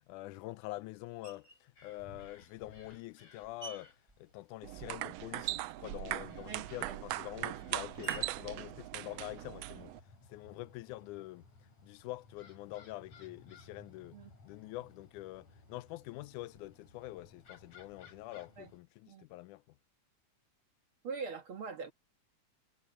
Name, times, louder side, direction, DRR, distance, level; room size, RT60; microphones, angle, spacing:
voice 1, 0.1-3.9 4.2-9.9 10.3-11.5 11.8-14.2 14.4-19.6, left 18 dB, 85° left, 2.0 m, -46 dB
Screech, 1.2-1.7 2.5-5.2 5.4-9.7, right 1 dB, 15° right, 1.9 m, -56 dB
sound 1, 1.8-18.8, left 3 dB, 60° left, 7.8 m, -59 dB
sound 2, 4.6-10.0, right 16 dB, 85° right, 1.4 m, -39 dB
voice 2, 6.5-7.0 14.1-14.3 18.6-18.7 19.1-19.3 21.0-21.9, right 5 dB, 50° right, 2.0 m, -43 dB
omnidirectional pair, 3.5 m